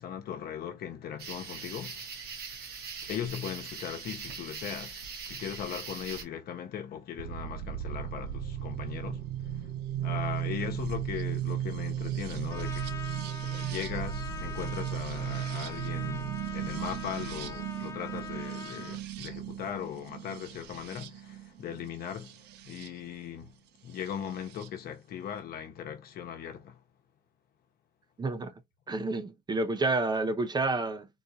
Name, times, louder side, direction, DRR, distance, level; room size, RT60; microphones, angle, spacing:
voice 1, 0.0-2.1 3.0-9.3 9.6-9.7 10.0-12.9 13.4-23.6 23.8-26.8, left 9 dB, 65° left, 1.0 m, -39 dB
sound 1, 1.2-6.2, right 5 dB, 70° right, 1.2 m, -41 dB
sound 2, 7.2-22.9 24.1-24.7, right 11 dB, 85° right, 0.5 m, -36 dB
Trumpet, 12.5-19.0, left 6 dB, 15° left, 0.6 m, -44 dB
voice 2, 28.2-28.5 28.9-31.1, right 3 dB, 25° right, 0.6 m, -29 dB
4.0 x 2.6 x 2.3 m
cardioid pair, 110°, 17 cm